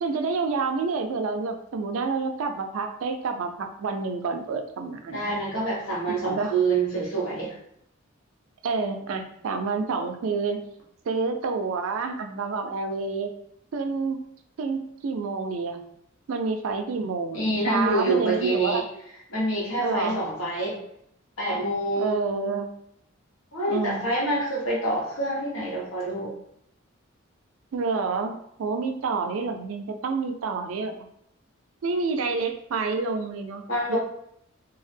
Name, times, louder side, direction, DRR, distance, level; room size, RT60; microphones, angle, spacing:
voice 1, 0.0-5.3 6.1-6.5 8.6-10.6 11.1-13.3 13.7-14.2 14.6-15.8 16.3-18.8 19.8-20.2 22.0-22.7 23.7-24.0 27.7-28.3 28.6-31.1 31.8-34.0, right 4 dB, 85° right, 5 dB, 0.4 m, -28 dB
voice 2, 5.1-7.6 17.3-18.8 19.3-20.8 21.4-22.1 23.5-26.3 33.7-34.0, right 2 dB, 75° left, -5 dB, 1.0 m, -26 dB
2.3 x 2.0 x 3.3 m, 0.73 s
head